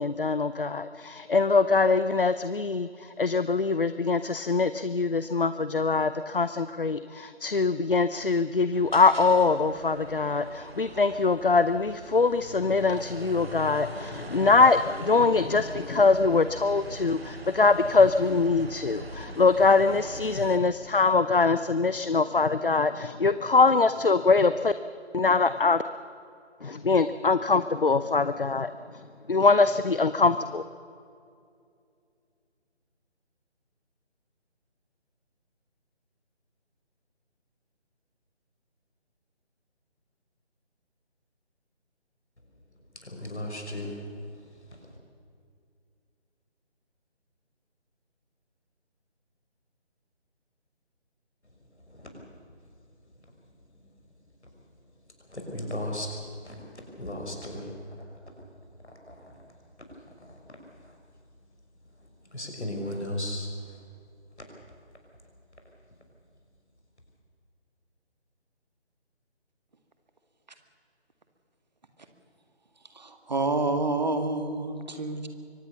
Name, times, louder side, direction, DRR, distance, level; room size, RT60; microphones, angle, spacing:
voice 1, 0.0-24.7 25.1-25.8 26.6-30.6, left 4 dB, 50° left, 0.7 m, -23 dB
sound 1, 8.7-20.6, right 2 dB, 60° right, 2.3 m, -43 dB
voice 2, 42.9-45.0 51.4-51.5 51.9-52.3 54.4-54.5 55.3-58.1 58.8-59.4 59.8-61.0 61.9-63.8 64.4-64.5, left 1 dB, 75° left, 6.2 m, -37 dB
voice 3, 72.9-75.3, right 2 dB, 40° right, 2.0 m, -28 dB
24.0 x 18.5 x 7.0 m
figure-of-eight pair, 160°, 34 cm